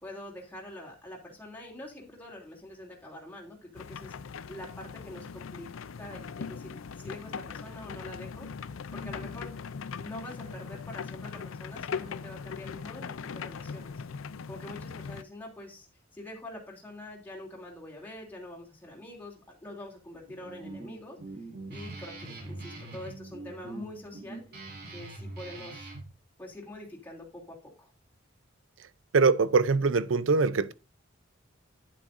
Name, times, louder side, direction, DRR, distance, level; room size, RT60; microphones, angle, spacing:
voice 1, 0.0-8.5 8.9-9.5 10.0-13.9 14.5-15.9 16.1-21.2 21.7-24.4 24.9-25.9 26.4-27.9, left 1 dB, 10° left, 2.9 m, -45 dB
sound 1, 3.7-15.2, left 5 dB, 75° left, 0.5 m, -40 dB
Guitar, 20.3-26.0, right 2 dB, 50° right, 3.0 m, -43 dB
voice 2, 29.1-30.7, right 4 dB, 65° right, 0.5 m, -23 dB
10.5 x 8.8 x 2.6 m
head